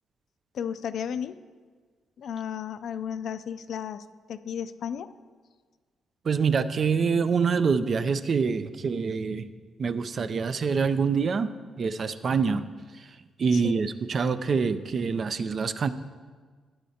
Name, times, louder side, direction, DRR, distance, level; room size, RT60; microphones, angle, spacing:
voice 1, 0.5-1.3 2.2-5.1 13.5-13.8, left 8 dB, 70° left, 11 dB, 0.4 m, -34 dB
voice 2, 6.2-9.5 9.8-13.1 13.4-15.9, right 5 dB, 50° right, 12 dB, 0.4 m, -26 dB
11.5 x 9.3 x 2.8 m, 1.5 s
cardioid pair, 90°, 0 cm